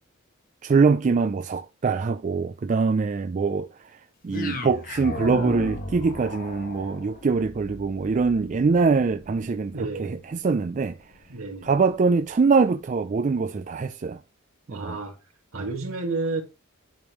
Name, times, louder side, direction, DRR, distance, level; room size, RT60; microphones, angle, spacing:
voice 1, 0.6-11.0 11.6-14.2 14.7-15.0, right 4 dB, 35° right, 0.3 m, -23 dB
sound 1, 4.3-12.5, left 2 dB, 40° left, 1.3 m, -37 dB
voice 2, 9.7-10.3 11.3-11.8 14.7-15.2 15.5-16.4, right 3 dB, 70° right, 2.1 m, -31 dB
10.0 x 5.2 x 3.1 m
head